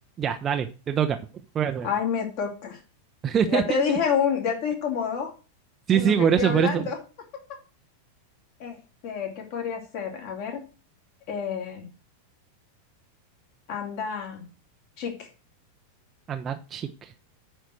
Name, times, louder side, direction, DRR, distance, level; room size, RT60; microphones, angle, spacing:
voice 1, 0.2-1.2 1.5-1.9 3.2-3.6 5.9-6.8 16.3-17.1, right 8 dB, 25° right, 6 dB, 0.7 m, -24 dB
voice 2, 1.8-2.8 3.5-5.3 5.9-7.0 8.6-10.6 11.3-11.9 13.7-14.4 15.0-15.3, left 6 dB, 45° left, 2 dB, 3.0 m, -28 dB
9.1 x 4.5 x 6.3 m, 0.35 s
figure-of-eight pair, 90°, 0 cm